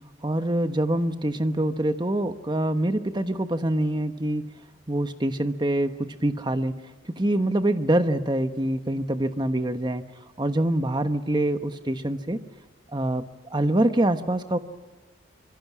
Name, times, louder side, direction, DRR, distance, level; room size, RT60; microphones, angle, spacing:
voice 1, 0.2-4.5 4.9-5.9 6.2-6.8 7.1-10.0 10.4-12.4 12.9-13.2 13.5-14.6, right 1 dB, 25° right, 9 dB, 1.1 m, -25 dB
26.0 x 23.0 x 6.2 m, 1.3 s
head